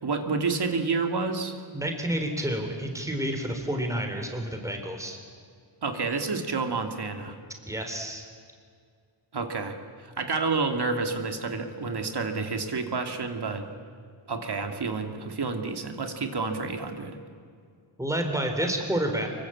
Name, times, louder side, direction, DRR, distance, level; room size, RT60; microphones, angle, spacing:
voice 1, 0.0-1.6 5.8-7.4 9.3-13.7 14.3-17.2, right 4 dB, 50° right, 5 dB, 2.8 m, -29 dB
voice 2, 1.7-5.2 7.7-8.3 18.0-19.3, right 1 dB, 5° right, 4 dB, 3.7 m, -29 dB
25.5 x 23.5 x 8.8 m, 2.2 s
wide cardioid pair, 110°, 49 cm